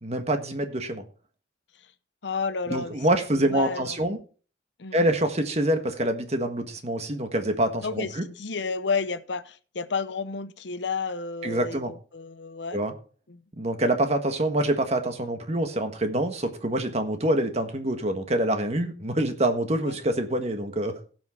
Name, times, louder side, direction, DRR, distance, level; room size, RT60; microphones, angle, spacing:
voice 1, 0.0-1.0 2.7-4.2 4.9-8.2 11.4-11.9 12.7-12.9 13.6-20.9, right 1 dB, 35° right, 1.5 m, -26 dB
voice 2, 2.2-3.0 3.5-4.0 4.8-5.0 7.8-12.8 13.3-13.4 19.8-20.0, left 4 dB, 80° left, 0.8 m, -31 dB
16.5 x 6.2 x 4.4 m
head